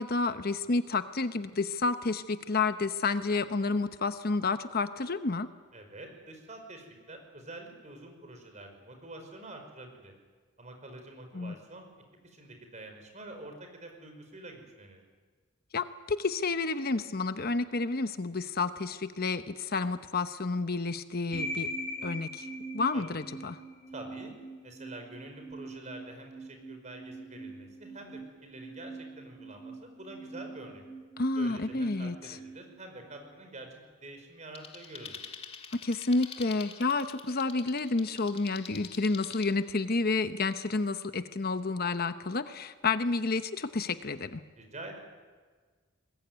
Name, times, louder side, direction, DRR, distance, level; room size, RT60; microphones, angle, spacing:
voice 1, 0.0-5.5 11.3-11.6 15.7-21.7 22.0-22.5 22.7-23.6 31.2-32.4 35.8-44.4, left 3 dB, 50° left, 10 dB, 0.9 m, -30 dB
voice 2, 5.7-10.1 10.6-11.9 12.2-15.0 22.9-23.1 23.9-24.3 24.6-30.9 31.4-35.2 44.6-45.0, right 2 dB, 35° right, 5 dB, 5.2 m, -47 dB
sound 1, 21.3-33.4, right 1 dB, 5° left, 7.8 m, -42 dB
sound 2, 34.5-39.5, left 6 dB, 30° left, 2.2 m, -46 dB
22.5 x 20.5 x 9.4 m, 1.5 s
head